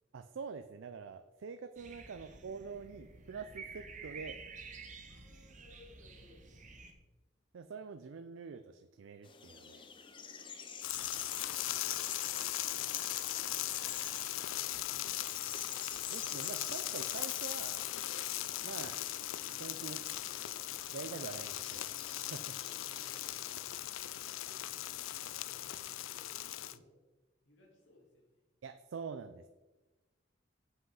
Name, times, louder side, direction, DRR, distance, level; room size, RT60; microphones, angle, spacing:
voice 1, 0.1-4.3 7.5-9.9 16.1-17.9 18.6-19.0 19.5-20.1 20.9-22.6 28.6-29.5, right 5 dB, 80° right, 9 dB, 0.4 m, -45 dB
sound 1, 1.8-6.9, right 4 dB, 40° right, 0.9 m, -50 dB
voice 2, 5.1-6.4 10.9-12.0 22.6-23.7 24.4-27.0 27.4-28.4, left 2 dB, 75° left, -1 dB, 2.5 m, -64 dB
sound 2, 9.2-23.6, left 6 dB, 25° left, 0.5 m, -48 dB
sound 3, 10.8-26.8, left 14 dB, 90° left, 0.4 m, -39 dB
7.8 x 5.8 x 5.5 m, 1.2 s
head